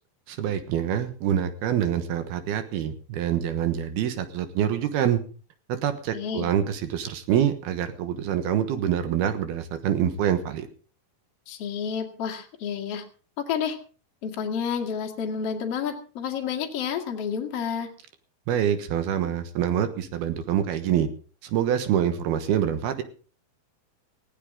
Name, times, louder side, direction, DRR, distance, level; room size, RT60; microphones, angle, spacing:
voice 1, 0.3-5.2 5.7-10.7 18.5-21.1 21.4-23.0, right 9 dB, 75° right, 9 dB, 3.3 m, -26 dB
voice 2, 6.1-6.5 11.5-13.0 13.4-13.8 14.2-17.9, left 7 dB, 45° left, 2 dB, 2.6 m, -30 dB
19.0 x 16.0 x 3.8 m, 0.38 s
omnidirectional pair, 4.5 m